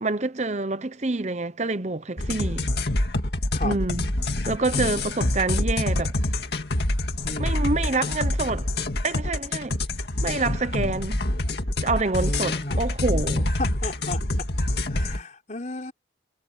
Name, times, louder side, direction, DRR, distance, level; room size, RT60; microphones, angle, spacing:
voice 1, 0.0-2.6 3.6-4.1 4.5-6.1 7.4-8.7 9.0-9.8 10.2-11.2 11.8-13.6, right 3 dB, 35° right, 0.9 m, -27 dB
sound 1, 2.2-15.2, left 1 dB, 55° left, 2.2 m, -26 dB
voice 2, 12.2-12.8 13.6-14.2 14.9-15.9, left 1 dB, 40° left, 4.3 m, -33 dB
head